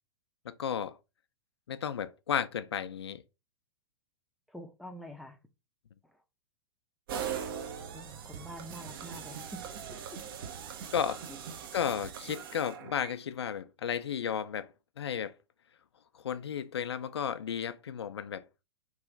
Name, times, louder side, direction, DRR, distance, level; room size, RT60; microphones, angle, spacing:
voice 1, 0.5-1.0 1.7-3.2 10.9-11.3 11.7-14.7 15.0-15.3 16.1-18.4, left 8 dB, 75° left, 0.4 m, -33 dB
voice 2, 4.5-5.4 7.9-9.6, equal, ahead, 0.5 m, -46 dB
sound 1, 7.1-13.1, right 7 dB, 55° right, 0.7 m, -41 dB
3.1 x 2.4 x 3.6 m
figure-of-eight pair, 105°, 14 cm